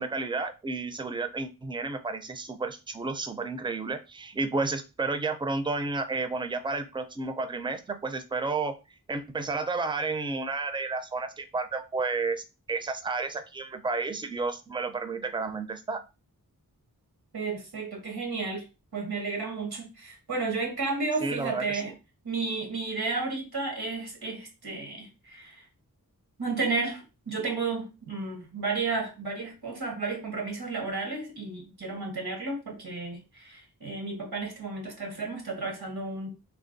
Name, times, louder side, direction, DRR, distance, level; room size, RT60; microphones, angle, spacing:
voice 1, 0.0-8.8 9.1-16.0 21.2-22.0, right 3 dB, 15° right, 0.4 m, -31 dB
voice 2, 17.3-18.6 18.9-21.9 22.2-25.6 26.4-36.3, right 3 dB, 90° right, 1.3 m, -32 dB
3.3 x 2.1 x 3.8 m
wide cardioid pair, 70°, 37 cm